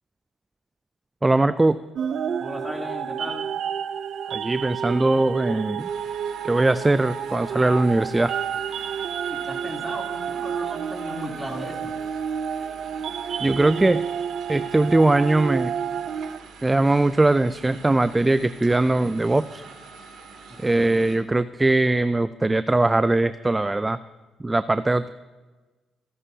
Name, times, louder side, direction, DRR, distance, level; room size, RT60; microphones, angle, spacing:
voice 1, 1.2-1.8 4.3-5.9 6.4-8.3 13.4-14.0 14.5-15.7 16.6-19.6 20.6-24.0 24.4-25.1, right 2 dB, 15° right, 13 dB, 0.4 m, -20 dB
sound 1, 2.0-16.4, right 8 dB, 65° right, 0.5 m, -30 dB
voice 2, 2.4-3.5 9.3-11.9 20.5-21.1, equal, ahead, -1 dB, 3.2 m, -36 dB
sound 2, 5.8-21.2, right 4 dB, 85° right, 2.5 m, -45 dB
27.0 x 11.0 x 2.8 m, 1.2 s
cardioid pair, 90°, 0 cm